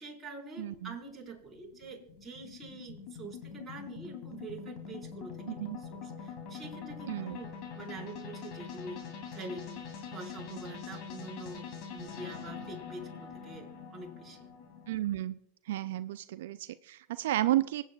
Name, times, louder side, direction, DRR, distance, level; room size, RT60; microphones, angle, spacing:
voice 1, 0.0-9.7 10.0-14.5, right 2 dB, 15° right, -3 dB, 4.3 m, -45 dB
voice 2, 0.6-0.9 5.5-5.8 7.1-7.4 14.9-15.4 15.7-17.8, right 14 dB, 75° right, 13 dB, 0.3 m, -32 dB
sound 1, 0.7-15.0, left 6 dB, 50° left, 2.8 m, -44 dB
25.5 x 8.7 x 2.3 m, 0.73 s
hypercardioid pair, 115°, 0 cm